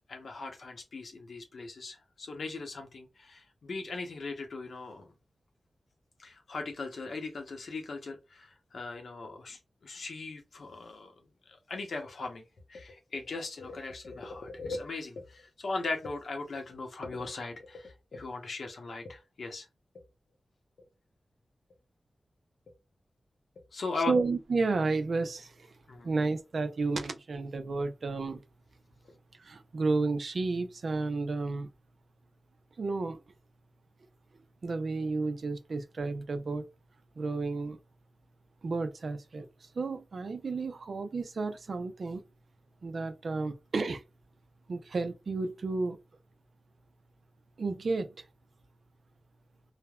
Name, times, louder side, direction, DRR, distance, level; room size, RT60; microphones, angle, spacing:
voice 1, 0.1-5.1 6.2-11.1 11.5-12.4 12.7-19.7 19.9-20.0 20.8-20.9 23.7-24.1 25.9-26.1 29.1-29.2, left 3 dB, 75° left, 0.7 m, -39 dB
voice 2, 24.1-25.7 26.0-28.4 29.4-31.7 32.8-33.2 34.6-36.7 37.2-37.8 38.6-42.2 42.8-44.0 44.7-46.0 47.6-48.3, right 3 dB, 65° right, 0.4 m, -32 dB
3.2 x 2.1 x 2.3 m
wide cardioid pair, 95°, 0 cm